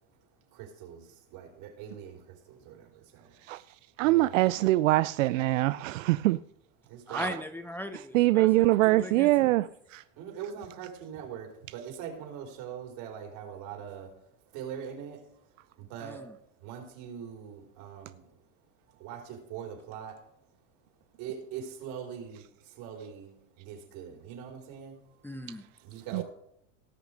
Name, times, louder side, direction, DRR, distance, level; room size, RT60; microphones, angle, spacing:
voice 1, 0.5-3.3 4.0-4.5 6.9-7.3 10.2-14.1 14.5-15.3 15.8-16.3 16.6-18.3 19.0-20.2 21.2-25.0 25.8-26.2, right 8 dB, 60° right, 4.4 m, -42 dB
voice 2, 3.4-6.4 7.1-7.3 8.1-10.0 26.1-26.2, right 17 dB, 85° right, 0.5 m, -24 dB
voice 3, 7.1-9.5 16.0-16.3 25.2-25.6, left 1 dB, 5° left, 0.9 m, -39 dB
18.0 x 6.4 x 5.1 m
supercardioid pair, 100°, 37 cm